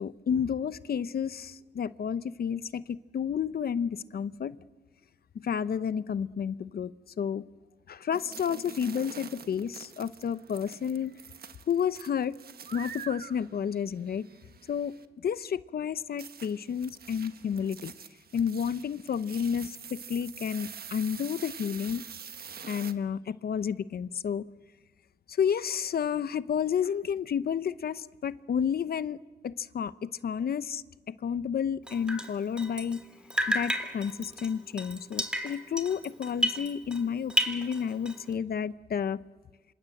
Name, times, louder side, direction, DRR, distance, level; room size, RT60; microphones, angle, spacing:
voice 1, 0.0-4.6 5.3-6.9 7.2-7.4 7.9-11.2 11.7-12.3 12.7-14.3 14.7-17.9 18.3-22.0 22.6-24.5 25.3-29.2 29.4-33.0 33.5-39.2, left 7 dB, 65° left, 0.8 m, -31 dB
sound 1, 8.1-15.1 16.2-22.9, right 7 dB, 70° right, 1.4 m, -46 dB
Drip, 31.9-33.0 33.3-37.0 37.3-38.3, equal, 5° right, 3.2 m, -32 dB
27.5 x 26.0 x 7.8 m
cardioid pair, 75°, 17 cm